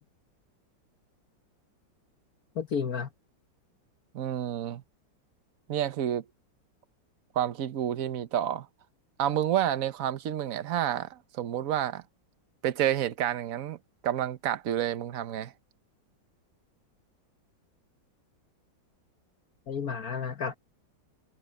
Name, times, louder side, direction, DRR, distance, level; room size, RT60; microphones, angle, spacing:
voice 1, 2.5-3.1 19.7-20.5, left 6 dB, 55° left, 1.5 m, -31 dB
voice 2, 4.1-4.8 5.7-6.2 7.3-8.7 9.2-12.0 12.6-13.8 14.0-15.5, right 11 dB, 50° right, 1.2 m, -29 dB
omnidirectional pair, 2.1 m